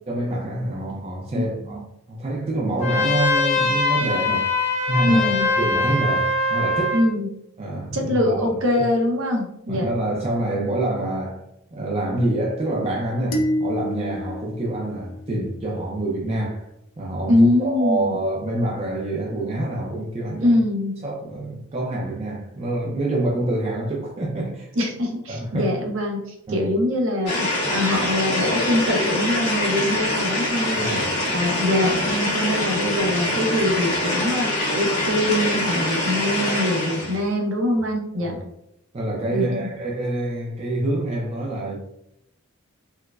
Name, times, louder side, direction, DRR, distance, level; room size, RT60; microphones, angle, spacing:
voice 1, 0.1-1.8 2.1-4.5 4.9-7.0 7.6-8.6 9.7-11.4 11.7-16.7 17.0-20.6 21.0-24.7 25.3-25.8 26.5-26.7 30.7-31.0 36.9-37.1 38.1-38.4 38.9-41.8, right 1 dB, 30° right, 0.4 m, -26 dB
voice 2, 1.4-1.8 5.0-5.5 6.9-7.3 7.9-9.9 17.3-18.1 20.4-20.9 24.8-31.0 31.3-38.4 39.3-39.7, left 1 dB, 65° right, 0.7 m, -23 dB
Trumpet, 2.8-7.1, left 3 dB, 35° left, 0.7 m, -22 dB
sound 1, 13.3-15.7, left 1 dB, 60° left, 0.5 m, -28 dB
sound 2, 27.3-37.2, left 1 dB, 80° left, 1.3 m, -24 dB
4.5 x 2.1 x 2.3 m
head